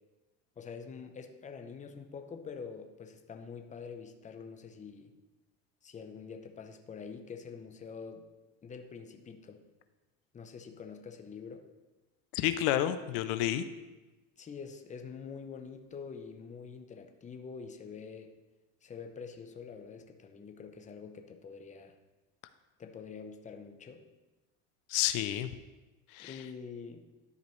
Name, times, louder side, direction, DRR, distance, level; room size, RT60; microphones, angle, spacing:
voice 1, 0.6-5.1 5.8-8.3 8.6-9.6 10.3-11.7 14.4-18.3 18.8-21.9 22.8-24.0 26.2-27.0, left 5 dB, 20° left, 5 dB, 0.7 m, -46 dB
voice 2, 12.3-13.7 24.9-25.5 26.1-26.4, left 12 dB, 80° left, 11 dB, 0.6 m, -30 dB
12.0 x 5.1 x 3.1 m, 1.1 s
supercardioid pair, 115°, 37 cm